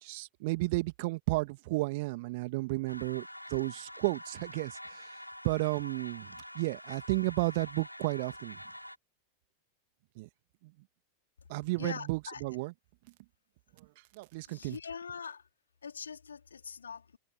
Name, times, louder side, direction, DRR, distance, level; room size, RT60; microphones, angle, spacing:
voice 1, 0.0-5.2 5.4-8.6 10.2-10.3 10.6-10.7 11.5-12.7 13.8-13.9 14.1-14.8, right 23 dB, 50° right, 2.1 m, -33 dB
sound 1, 2.9-9.0, equal, 90° left, 3.7 m, -47 dB
voice 2, 11.8-12.4 14.4-15.4 15.8-17.2, left 6 dB, 70° left, 3.7 m, -43 dB
figure-of-eight pair, 90°, 0 cm